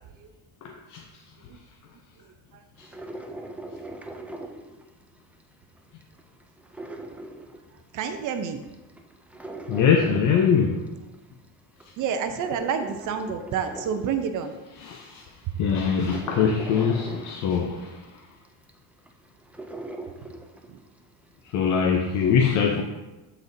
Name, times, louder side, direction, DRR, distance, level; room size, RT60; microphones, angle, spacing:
voice 1, 0.6-1.0 2.8-2.9 9.7-10.8 14.8-15.2 15.6-18.0 21.5-22.8, left 6 dB, 45° left, 2 dB, 0.7 m, -23 dB
sound 1, 2.8-5.4 5.8-8.1 8.5-11.1 11.6-14.7 15.2-15.3 15.7-20.9 21.2-21.3, right 2 dB, 5° right, 0.3 m, -40 dB
voice 2, 7.9-8.6 12.0-14.6 20.7-20.8, right 7 dB, 50° right, 7 dB, 0.6 m, -29 dB
12.0 x 4.2 x 2.6 m, 1.1 s
cardioid pair, 130°, 41 cm